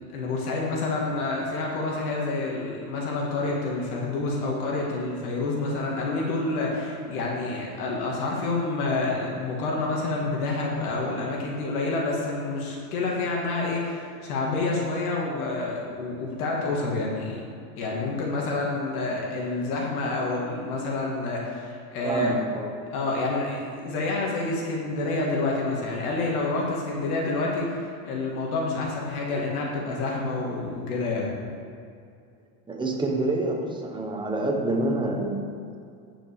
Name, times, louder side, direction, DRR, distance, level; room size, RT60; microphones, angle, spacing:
voice 1, 0.1-17.4 17.8-22.4 22.9-31.3, left 3 dB, 90° left, -2 dB, 2.2 m, -28 dB
voice 2, 22.0-22.7 32.7-35.5, right 2 dB, 10° right, 0 dB, 1.3 m, -27 dB
9.8 x 5.9 x 7.0 m, 2.4 s
supercardioid pair, 140°, 43 cm